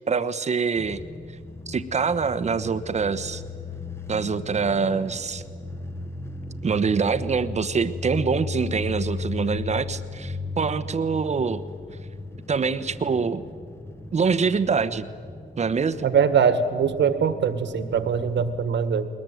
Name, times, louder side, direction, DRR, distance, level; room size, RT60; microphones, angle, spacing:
voice 1, 0.1-1.0 1.7-3.4 4.1-5.4 6.6-11.6 12.5-13.4 14.1-15.1 15.6-16.1, right 5 dB, 35° right, 13 dB, 1.1 m, -25 dB
sound 1, 0.8-18.6, left 3 dB, 10° left, 1.4 m, -36 dB
voice 2, 16.0-19.1, right 7 dB, 65° right, 11 dB, 1.8 m, -22 dB
21.0 x 20.5 x 9.3 m, 2.1 s
cardioid pair, 90°, 20 cm